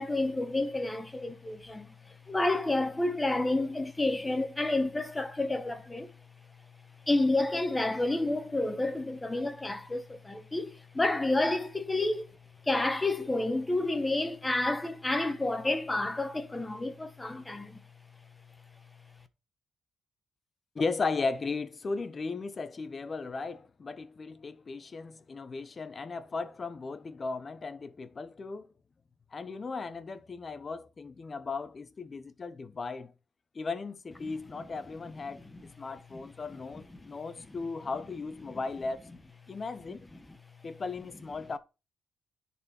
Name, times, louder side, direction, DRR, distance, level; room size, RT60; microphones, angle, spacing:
voice 1, 0.0-1.9 2.3-6.1 7.1-12.3 12.7-17.8 34.2-34.3 36.1-36.2 36.5-37.2 38.5-38.6, left 2 dB, 15° left, 1.2 m, -30 dB
voice 2, 20.7-28.7 29.3-33.1 33.5-35.4 35.8-39.1 39.5-40.1 40.6-41.6, left 4 dB, 35° left, 0.9 m, -36 dB
10.5 x 4.4 x 4.4 m
cardioid pair, 90°, 0 cm